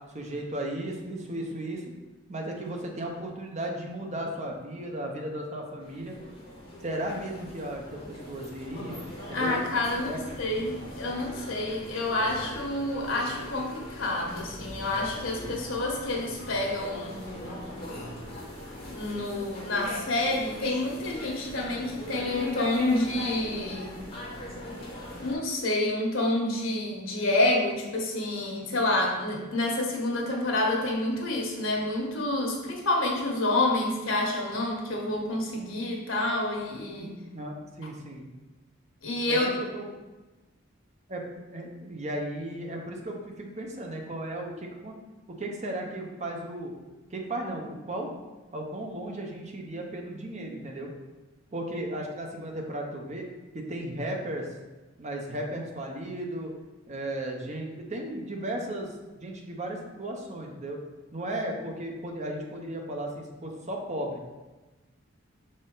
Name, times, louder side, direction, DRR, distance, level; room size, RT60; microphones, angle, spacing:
voice 1, 0.1-1.8 2.3-6.1 6.8-9.0 9.3-9.6 10.1-10.2 37.0-38.3 39.3-39.4 39.7-39.9 41.1-41.2 41.5-45.0 45.4-46.7 47.1-48.1 48.5-50.9 51.5-53.3 53.5-54.5 55.0-56.5 56.9-58.9 59.2-60.8 61.1-64.2, right 1 dB, 35° right, 1 dB, 0.8 m, -35 dB
sound 1, 5.8-25.3, left 1 dB, 25° left, 1.8 m, -40 dB
voice 2, 9.3-10.1 10.4-17.6 18.9-24.0 25.2-37.1 39.0-39.5, left 2 dB, 80° left, 0 dB, 1.3 m, -28 dB
6.0 x 4.3 x 3.9 m, 1.2 s
head